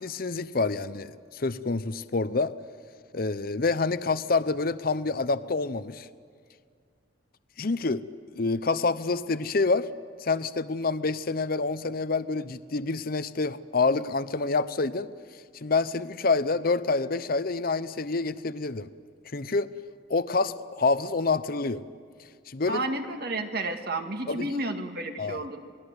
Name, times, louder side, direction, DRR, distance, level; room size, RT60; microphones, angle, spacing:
voice 1, 0.0-2.5 3.1-6.1 7.6-8.0 8.3-9.9 10.2-15.1 15.6-18.9 19.3-19.7 20.1-21.8 22.5-22.8 24.3-24.5 25.2-25.4, left 3 dB, 50° left, 14 dB, 0.7 m, -27 dB
voice 2, 22.7-25.6, right 2 dB, 55° right, 5 dB, 2.0 m, -31 dB
28.0 x 19.5 x 8.1 m, 2.1 s
head